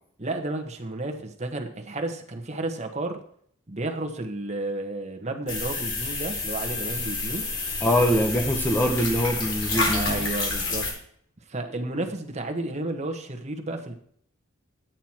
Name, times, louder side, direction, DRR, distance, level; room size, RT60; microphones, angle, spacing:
voice 1, 0.2-3.2 3.7-7.4 9.9-10.9 11.5-13.9, right 2 dB, 35° right, 4 dB, 1.2 m, -32 dB
sound 1, 5.5-10.9, left 3 dB, 60° left, 3.9 m, -29 dB
voice 2, 7.8-10.2, equal, 10° left, 4 dB, 0.9 m, -23 dB
11.0 x 9.1 x 4.5 m, 0.63 s
head